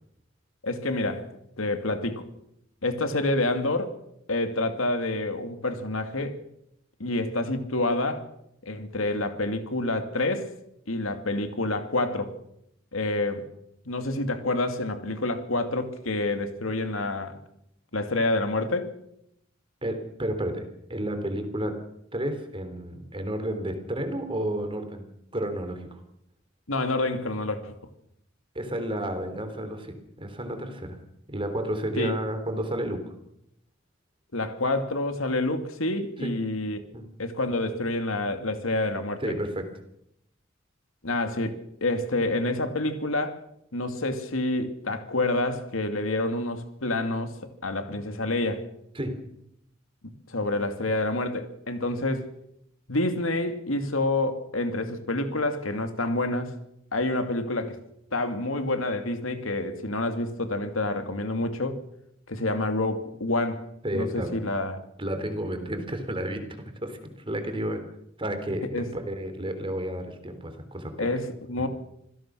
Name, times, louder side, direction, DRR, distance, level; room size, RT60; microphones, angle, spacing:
voice 1, 0.6-1.3 1.6-2.2 2.8-4.0 4.3-6.4 7.0-8.3 8.6-10.5 10.9-12.3 12.9-13.5 13.9-17.4 17.9-18.9 26.7-27.7 32.0-32.2 34.3-36.8 37.2-39.2 41.0-43.4 43.7-47.4 47.6-48.7 50.3-52.3 52.9-56.6 56.9-57.8 58.1-61.8 62.3-64.8 68.7-68.9 71.0-71.7, left 2 dB, 85° left, 2.6 m, -28 dB
voice 2, 19.8-21.8 22.1-25.1 25.3-26.0 28.5-31.0 31.3-33.1 36.2-36.3 36.9-37.1 39.2-39.7 48.9-49.2 63.8-64.4 65.0-67.8 68.2-71.1 71.6-71.7, right 1 dB, 25° right, 3.4 m, -31 dB
26.5 x 16.5 x 6.3 m
head